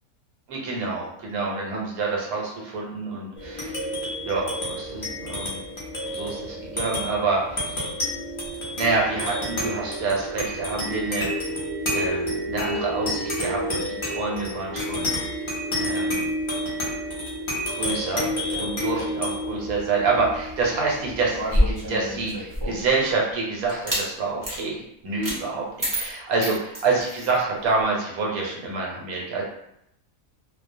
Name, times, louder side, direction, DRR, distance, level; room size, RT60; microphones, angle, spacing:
voice 1, 0.5-3.8 4.2-5.6 6.1-7.8 8.8-11.5 11.9-15.3 15.8-16.3 17.7-29.4, right 3 dB, 90° right, -2 dB, 1.1 m, -27 dB
sound 1, 3.4-22.2, equal, 45° left, 0.4 m, -30 dB
sound 2, 21.3-22.9 23.7-24.1 24.4-24.6 25.2-25.4 25.8-27.3, equal, 20° right, 0.5 m, -26 dB
2.4 x 2.0 x 2.6 m, 0.78 s
omnidirectional pair, 1.5 m